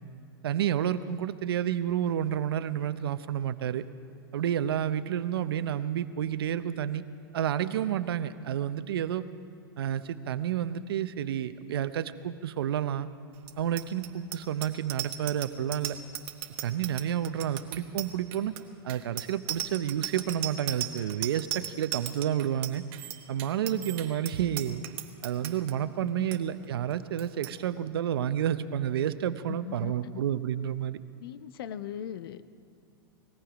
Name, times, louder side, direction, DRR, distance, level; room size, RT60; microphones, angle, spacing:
voice 1, 0.4-3.9 4.3-7.0 7.3-9.2 9.8-13.1 13.6-16.0 16.6-18.5 18.8-22.8 23.3-24.8 25.2-31.0, right 10 dB, 80° right, 12 dB, 0.7 m, -30 dB
Bicycle bell, 13.4-25.7 26.1-26.4 26.6-26.9 27.2-27.5, right 13 dB, 45° right, 1.1 m, -37 dB
voice 2, 29.5-30.2 31.2-32.4, left 11 dB, 70° left, 13 dB, 0.7 m, -39 dB
19.5 x 14.5 x 5.0 m, 2.4 s
hypercardioid pair, 125°, 13 cm